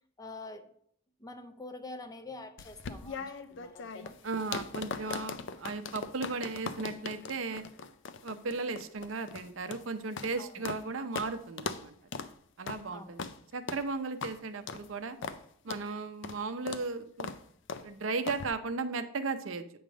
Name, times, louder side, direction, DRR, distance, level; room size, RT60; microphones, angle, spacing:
voice 1, 0.2-0.7 1.2-4.2 10.4-10.6 12.9-13.1, left 2 dB, 20° left, 8 dB, 0.6 m, -46 dB
sound 1, 2.6-10.8 11.1-11.3 11.6-11.8 12.1-12.3 12.7-12.8 13.2-13.4 13.7-13.8 14.2-14.3 14.7-14.9 15.2-15.4 15.7-15.8 16.2-16.4 16.7-16.9 17.2-17.4 17.7-17.9 18.3-18.5, left 5 dB, 65° left, 0.5 m, -39 dB
voice 2, 4.2-7.6 8.2-11.9 12.6-15.2 15.6-17.3 17.8-19.6, right 4 dB, 80° right, 9 dB, 0.6 m, -36 dB
8.7 x 3.4 x 6.2 m, 0.65 s
head